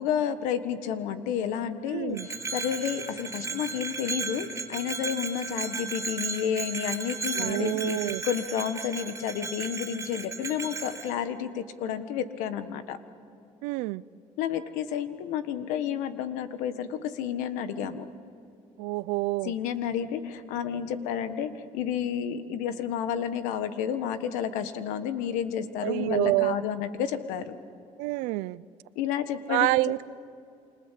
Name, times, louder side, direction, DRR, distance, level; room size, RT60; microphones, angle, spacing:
voice 1, 0.0-8.0 8.2-13.0 14.4-18.0 19.4-27.6 28.9-29.7, left 8 dB, 85° left, 1.5 m, -31 dB
voice 2, 1.9-2.3 7.4-8.2 13.6-14.0 18.8-19.5 25.8-26.6 28.0-28.6 29.5-30.0, right 21 dB, 90° right, 0.5 m, -27 dB
Bell, 2.1-11.1, right 4 dB, 20° right, 4.4 m, -35 dB
28.0 x 25.5 x 7.5 m
supercardioid pair, 85°, 13 cm